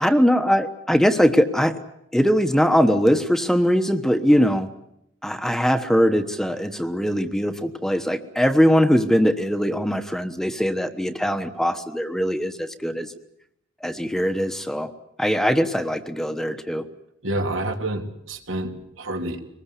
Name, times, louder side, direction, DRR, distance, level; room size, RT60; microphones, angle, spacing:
voice 1, 0.0-1.7 2.1-4.7 5.2-13.1 13.8-14.9 15.2-16.8, equal, ahead, 8 dB, 1.2 m, -21 dB
voice 2, 17.2-19.4, right 1 dB, 80° right, 4 dB, 3.3 m, -28 dB
24.0 x 20.5 x 8.3 m, 0.78 s
head